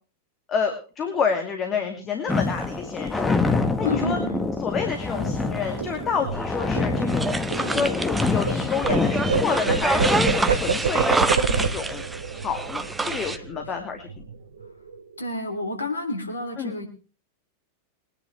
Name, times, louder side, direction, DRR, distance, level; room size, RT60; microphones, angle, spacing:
voice 1, 0.5-3.5 3.8-4.2 4.6-12.0 12.4-14.1 16.6-16.8, left 6 dB, 25° left, 4 dB, 2.5 m, -29 dB
sound 1, 2.3-10.8, left 3 dB, 10° left, 1.5 m, -26 dB
voice 2, 3.8-4.5 15.2-16.9, left 1 dB, 75° left, 5 dB, 3.3 m, -29 dB
sound 2, 5.1-8.5 8.8-13.8 14.1-14.3 14.6-15.2, right 5 dB, 70° right, 1.1 m, -28 dB
sound 3, 7.1-13.4, right 3 dB, 10° right, 0.9 m, -27 dB
23.0 x 10.5 x 3.3 m, 0.35 s
figure-of-eight pair, 90°, 0 cm